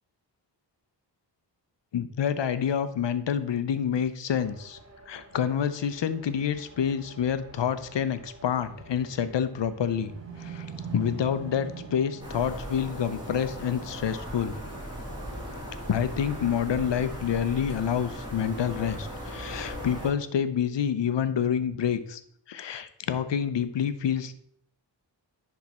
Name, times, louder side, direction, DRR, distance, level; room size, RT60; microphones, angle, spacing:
voice 1, 1.9-4.8 5.1-10.1 10.4-10.7 10.9-14.5 15.9-22.2 22.5-24.3, left 8 dB, 75° left, 12 dB, 0.7 m, -28 dB
sound 1, 4.3-17.1, right 2 dB, 35° right, 1.2 m, -51 dB
sound 2, 8.4-13.8, right 5 dB, 80° right, 1.3 m, -43 dB
sound 3, 12.2-20.1, equal, 10° right, 2.7 m, -38 dB
10.5 x 3.6 x 4.1 m, 0.67 s
wide cardioid pair, 75°, 43 cm